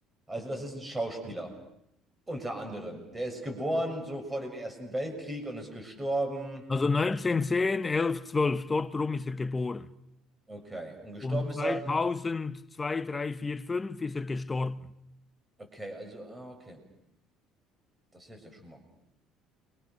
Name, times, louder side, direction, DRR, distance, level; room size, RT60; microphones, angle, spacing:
voice 1, 0.3-1.6 2.3-6.7 10.5-11.8 15.6-16.8 18.1-18.8, right 1 dB, 15° right, 7.0 m, -35 dB
voice 2, 6.7-9.9 11.2-14.9, left 4 dB, 15° left, 0.9 m, -29 dB
29.5 x 25.0 x 6.5 m
cardioid pair, 135°, 0 cm